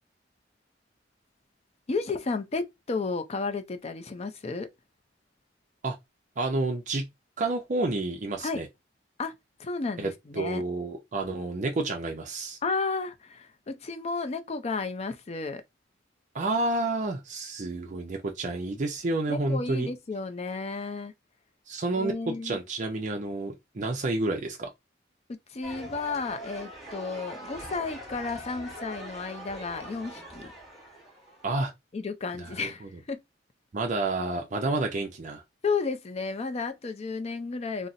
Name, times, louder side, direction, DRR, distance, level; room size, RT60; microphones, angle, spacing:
voice 1, 1.9-4.7 8.4-8.6 9.2-9.3 9.6-10.6 12.6-15.6 19.3-21.1 22.0-22.6 25.5-30.5 31.9-33.2 35.6-37.9, left 4 dB, 35° left, 0.4 m, -32 dB
voice 2, 6.4-7.1 7.4-8.7 10.0-12.6 16.3-19.9 21.7-24.7 31.4-31.7 32.4-32.9 33.7-35.4, right 2 dB, 45° right, 0.5 m, -30 dB
sound 1, 25.6-31.5, right 1 dB, ahead, 1.2 m, -42 dB
4.0 x 2.0 x 2.5 m
head